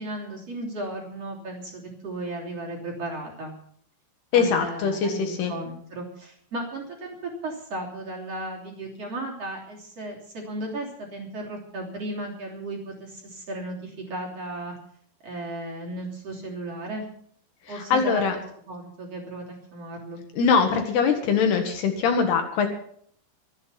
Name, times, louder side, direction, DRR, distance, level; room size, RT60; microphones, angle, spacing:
voice 1, 0.0-3.5 4.3-14.7 15.2-17.1 17.7-19.4 19.7-20.2, right 1 dB, 35° right, -2 dB, 3.8 m, -35 dB
voice 2, 4.3-5.5 17.7-18.4 20.3-22.7, left 6 dB, 65° left, 5 dB, 3.1 m, -22 dB
24.5 x 8.3 x 5.8 m, 0.63 s
omnidirectional pair, 5.4 m